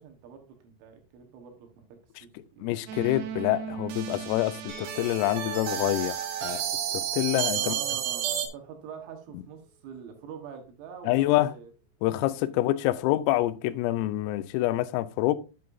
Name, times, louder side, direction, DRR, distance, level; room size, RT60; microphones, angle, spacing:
voice 1, 0.0-2.7 7.5-11.7 12.4-12.5, right 7 dB, 70° right, 3.4 m, -45 dB
voice 2, 2.6-6.6 6.9-7.8 11.1-11.5 12.0-15.4, left 15 dB, 85° left, 3.2 m, -26 dB
sound 1, 2.9-8.5, right 10 dB, 85° right, 3.9 m, -32 dB
sound 2, 4.7-10.5, right 5 dB, 40° right, 2.2 m, -52 dB
9.4 x 8.5 x 2.6 m
omnidirectional pair, 5.9 m